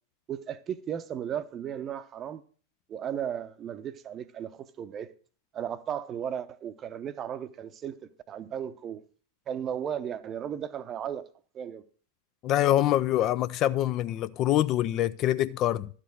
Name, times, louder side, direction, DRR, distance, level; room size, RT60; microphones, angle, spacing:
voice 1, 0.3-2.4 2.9-5.1 5.5-9.0 9.5-11.2 11.5-11.8, right 9 dB, 30° right, 0.7 m, -35 dB
voice 2, 12.4-15.9, left 13 dB, 35° left, 0.4 m, -25 dB
12.0 x 5.0 x 6.5 m
figure-of-eight pair, 90°, 0 cm